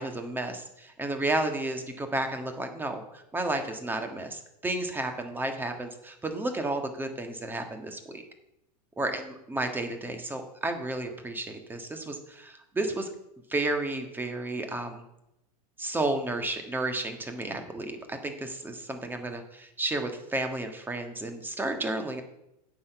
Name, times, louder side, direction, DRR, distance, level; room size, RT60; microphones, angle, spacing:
voice 1, 0.0-8.2 9.0-13.1 13.5-15.0 15.8-22.2, right 2 dB, 10° right, 6 dB, 1.5 m, -32 dB
9.3 x 6.2 x 6.9 m, 0.85 s
hypercardioid pair, 120°, 20 cm